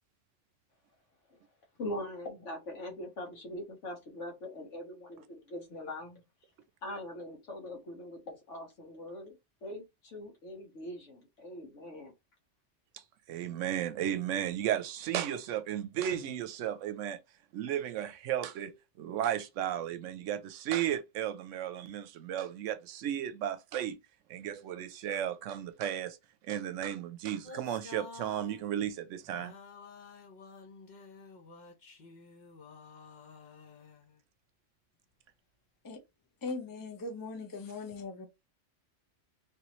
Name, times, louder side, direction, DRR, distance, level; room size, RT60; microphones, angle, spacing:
voice 1, 1.8-6.2 6.8-9.4 9.6-12.1, left 1 dB, 75° left, 1.5 m, -42 dB
voice 2, 13.3-17.2 17.5-24.0 24.3-26.2 26.4-29.5, right 10 dB, 85° right, 0.9 m, -34 dB
sound 1, 27.4-28.7 29.3-34.2, left 4 dB, 40° left, 0.8 m, -51 dB
voice 3, 36.4-38.3, left 3 dB, 25° left, 0.5 m, -39 dB
3.3 x 3.0 x 2.9 m
omnidirectional pair, 1.3 m